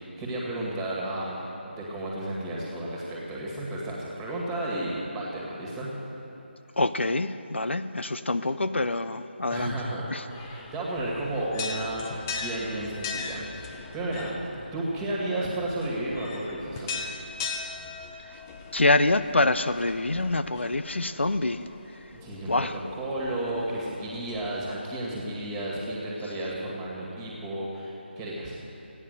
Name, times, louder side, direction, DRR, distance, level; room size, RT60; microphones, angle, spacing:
voice 1, 0.0-5.9 9.5-17.3 22.2-22.7 22.9-28.6, right 1 dB, 10° right, -4 dB, 2.1 m, -33 dB
voice 2, 6.8-9.7 10.1-10.2 18.7-21.7 22.5-22.7, left 2 dB, 75° left, 12 dB, 0.5 m, -25 dB
sound 1, 10.3-24.7, left 4 dB, 15° left, 0.6 m, -40 dB
15.5 x 9.7 x 6.7 m, 2.9 s
figure-of-eight pair, 155°, 6 cm